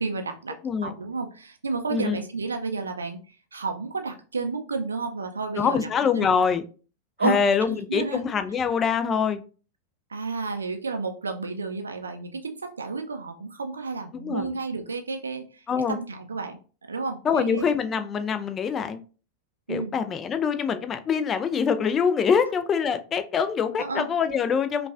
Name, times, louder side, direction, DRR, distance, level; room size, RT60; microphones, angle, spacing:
voice 1, 0.0-5.9 6.2-6.3 7.2-7.4 7.7-8.2 10.1-16.6 16.9-17.8 19.7-19.9 23.8-24.1, right 4 dB, 75° right, 0.4 m, -31 dB
voice 2, 5.6-6.6 7.2-9.4 14.1-14.5 15.7-16.0 17.2-19.0 19.7-24.9, left 6 dB, 25° left, 0.4 m, -24 dB
5.2 x 2.3 x 2.4 m
figure-of-eight pair, 90°, 0 cm